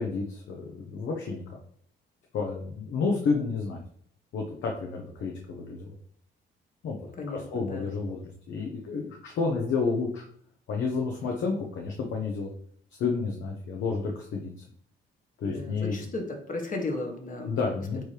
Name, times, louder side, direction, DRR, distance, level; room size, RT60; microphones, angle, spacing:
voice 1, 0.0-1.4 2.3-3.8 4.3-5.9 6.8-7.0 7.3-8.2 8.5-10.2 10.7-12.5 13.0-14.6 15.4-16.0 17.5-18.0, left 4 dB, 70° left, 0 dB, 0.9 m, -30 dB
voice 2, 7.2-7.9 15.4-17.6, left 2 dB, 40° left, 2 dB, 1.6 m, -35 dB
9.2 x 3.1 x 3.4 m, 0.63 s
cardioid pair, 90°, 20 cm